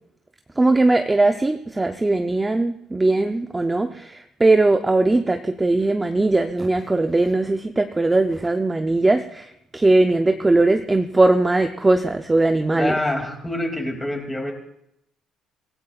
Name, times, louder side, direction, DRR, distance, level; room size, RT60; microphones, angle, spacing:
voice 1, 0.6-12.9, right 2 dB, 10° right, 6 dB, 0.6 m, -19 dB
voice 2, 12.7-14.5, left 1 dB, 10° left, 2 dB, 2.6 m, -26 dB
25.5 x 16.5 x 2.4 m, 0.75 s
cardioid pair, 155°, 0 cm